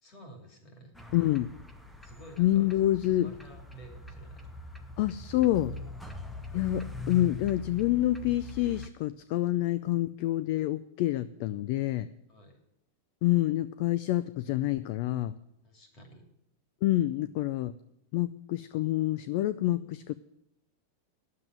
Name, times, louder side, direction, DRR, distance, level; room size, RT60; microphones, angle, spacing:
voice 1, 0.0-1.0 2.0-2.7 3.2-4.5 6.1-6.4 12.3-12.6 15.6-16.2, right 1 dB, 30° left, 3 dB, 2.7 m, -52 dB
sound 1, 0.9-8.9, left 2 dB, 5° left, 0.7 m, -42 dB
voice 2, 1.1-1.5 2.4-3.3 5.0-5.7 6.5-12.1 13.2-15.4 16.8-17.7 18.1-20.1, left 14 dB, 45° left, 15 dB, 0.4 m, -27 dB
9.9 x 7.5 x 9.3 m, 0.79 s
supercardioid pair, 165°, 0 cm